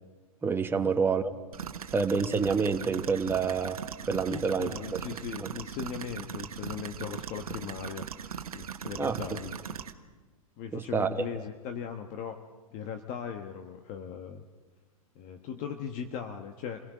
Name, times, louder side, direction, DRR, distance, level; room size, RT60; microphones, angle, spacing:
voice 1, 0.4-1.3 1.9-3.8 4.1-5.0 5.4-5.5 9.0-9.2 10.7-11.4, right 5 dB, 10° right, 6 dB, 1.2 m, -28 dB
sound 1, 1.5-9.9, right 8 dB, 85° right, 1.1 m, -39 dB
voice 2, 4.3-8.1 8.5-9.6 10.6-12.4 12.7-14.4 15.1-16.8, left 7 dB, 45° left, 6 dB, 1.3 m, -38 dB
28.0 x 18.0 x 5.1 m, 1.3 s
hypercardioid pair, 110°, 18 cm